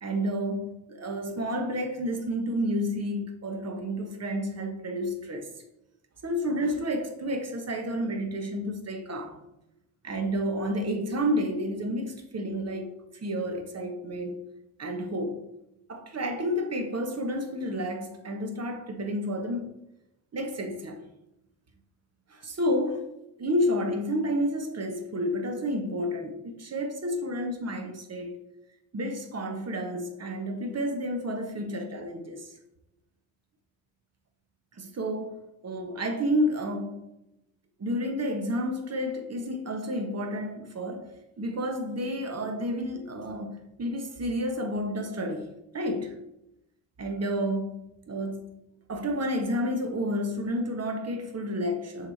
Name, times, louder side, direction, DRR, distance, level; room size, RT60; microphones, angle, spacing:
voice 1, 0.0-5.5 6.2-9.4 10.0-14.4 14.8-15.4 15.9-19.7 20.3-21.0 22.3-28.4 28.9-32.5 34.7-37.1 37.8-41.1 41.4-46.2 47.0-48.6 48.9-52.1, equal, 35° right, 1.4 m, -30 dB
6.3 x 3.5 x 4.2 m
hypercardioid pair, 55°, 46 cm